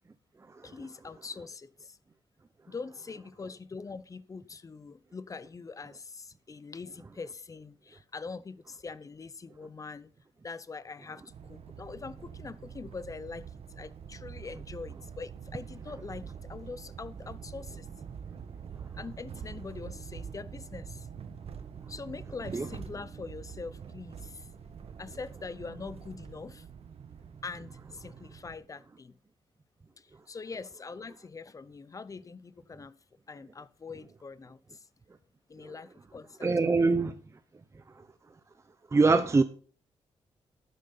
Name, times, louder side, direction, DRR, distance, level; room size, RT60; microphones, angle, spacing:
voice 1, 0.6-2.0 2.7-10.1 10.4-13.4 13.7-17.9 18.9-21.1 21.9-24.5 25.0-26.7 27.4-29.2 30.0-32.9 33.3-34.9 35.5-36.7, left 4 dB, 30° left, 0.7 m, -43 dB
sound 1, 11.3-28.6, right 7 dB, 65° right, 1.5 m, -45 dB
voice 2, 36.4-37.1 38.9-39.4, right 3 dB, 25° right, 0.7 m, -24 dB
12.0 x 9.4 x 4.0 m
cardioid pair, 115°, 11 cm